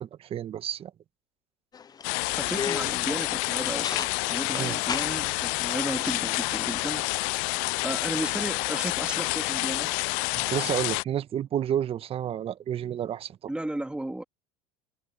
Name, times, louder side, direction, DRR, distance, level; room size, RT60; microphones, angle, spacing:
voice 1, 0.2-0.9 4.5-4.8 10.3-13.3, right 10 dB, 40° right, 1.5 m, -30 dB
sound 1, 1.7-6.7, left 7 dB, 25° left, 0.8 m, -38 dB
sound 2, 2.0-11.0, left 30 dB, 65° left, 0.5 m, -28 dB
voice 2, 2.3-7.1 7.3-7.4 7.8-9.9 13.5-14.2, right 1 dB, 5° right, 2.9 m, -34 dB
hypercardioid pair, 85°, 14 cm